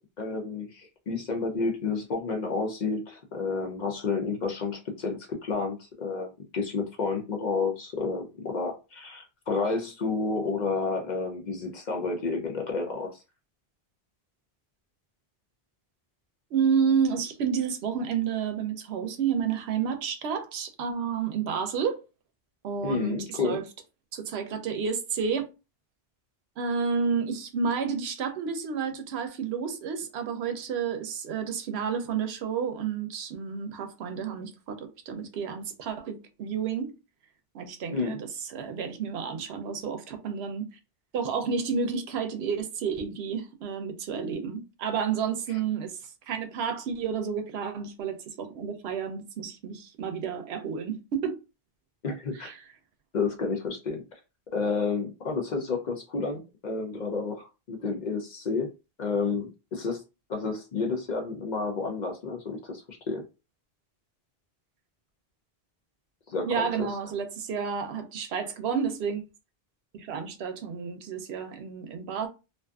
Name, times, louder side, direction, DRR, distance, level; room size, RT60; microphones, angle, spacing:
voice 1, 0.2-6.3 6.5-13.1 22.8-23.6 37.9-38.2 52.0-52.5 53.1-54.0 54.5-58.7 59.0-60.0 60.3-63.2 66.3-66.9, left 4 dB, 55° left, 0.6 m, -30 dB
voice 2, 16.5-22.0 22.6-23.6 24.1-25.5 26.6-36.9 37.5-40.8 41.1-51.4 52.3-52.7 66.4-69.2 69.9-72.3, right 6 dB, 85° right, 0.8 m, -30 dB
2.5 x 2.4 x 2.2 m
omnidirectional pair, 1.0 m